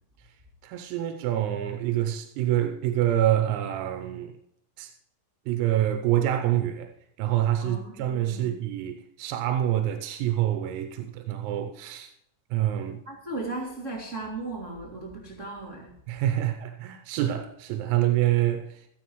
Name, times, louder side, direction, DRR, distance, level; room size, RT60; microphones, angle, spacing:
voice 1, 0.6-4.4 4.8-4.9 5.5-6.9 7.2-12.1 12.5-13.0 16.1-18.9, right 12 dB, 90° right, 3.5 m, -26 dB
voice 2, 7.6-8.5 13.0-15.9, right 2 dB, 55° right, 0.8 m, -36 dB
15.0 x 14.5 x 3.1 m
omnidirectional pair, 5.9 m